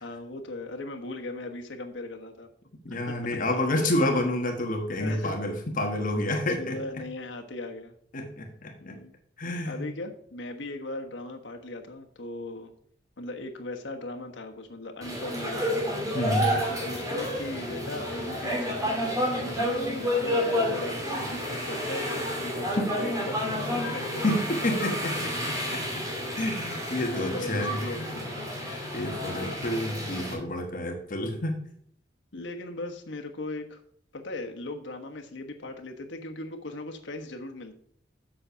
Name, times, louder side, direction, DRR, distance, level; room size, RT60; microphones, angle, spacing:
voice 1, 0.0-2.5 2.9-3.4 5.0-5.4 6.6-7.9 8.8-9.2 9.6-12.7 13.2-19.0 19.3-22.7 23.0-23.4 23.7-24.2 25.4-25.5 26.2-26.3 27.1-28.5 29.0-29.7 32.3-33.8 34.1-37.7, left 2 dB, 80° left, 4 dB, 1.3 m, -38 dB
voice 2, 2.8-6.8 8.1-9.0 9.4-9.9 16.1-16.5 22.8-22.9 24.2-25.8 26.4-28.2 28.6-31.6, left 1 dB, 50° left, 3 dB, 1.3 m, -29 dB
sound 1, 15.0-30.3, equal, 20° right, 2.7 m, -30 dB
7.6 x 6.8 x 5.7 m, 0.65 s
head